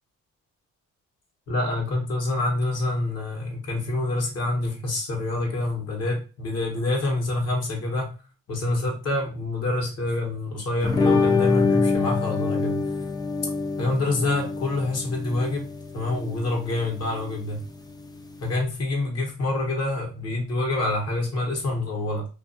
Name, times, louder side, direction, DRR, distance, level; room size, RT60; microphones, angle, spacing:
voice 1, 1.5-8.1 8.5-12.8 13.8-15.7 15.9-17.6 18.4-22.3, left 2 dB, 55° left, 0 dB, 1.0 m, -26 dB
sound 1, 10.8-18.5, left 4 dB, 15° left, 0.3 m, -26 dB
2.5 x 2.3 x 2.5 m, 0.33 s
cardioid pair, 90°, 30 cm